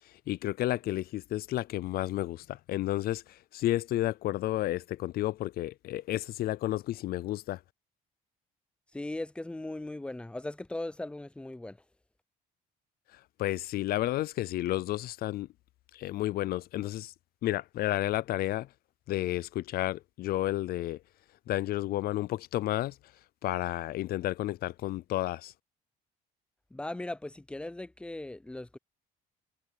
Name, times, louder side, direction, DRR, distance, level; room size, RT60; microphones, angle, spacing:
voice 1, 0.3-3.2 3.5-7.6 13.4-15.5 15.9-17.1 17.4-18.7 19.1-21.0 21.5-22.9 23.4-25.5, left 15 dB, 65° left, 0.5 m, -31 dB
voice 2, 8.9-11.8 26.7-28.8, left 2 dB, 5° left, 0.5 m, -38 dB
cardioid pair, 110°, 17 cm